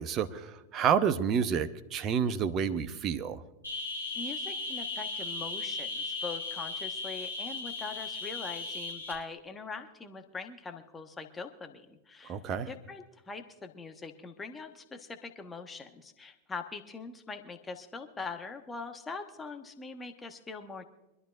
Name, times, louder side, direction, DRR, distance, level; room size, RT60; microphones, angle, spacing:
voice 1, 0.0-3.4 12.3-12.7, right 7 dB, 30° right, 11 dB, 1.0 m, -29 dB
sound 1, 3.6-9.1, left 3 dB, 85° left, 4.3 m, -36 dB
voice 2, 4.1-12.4 12.7-20.8, left 4 dB, 15° left, 6 dB, 1.2 m, -42 dB
25.0 x 12.5 x 2.5 m, 0.98 s
figure-of-eight pair, 90°, 0 cm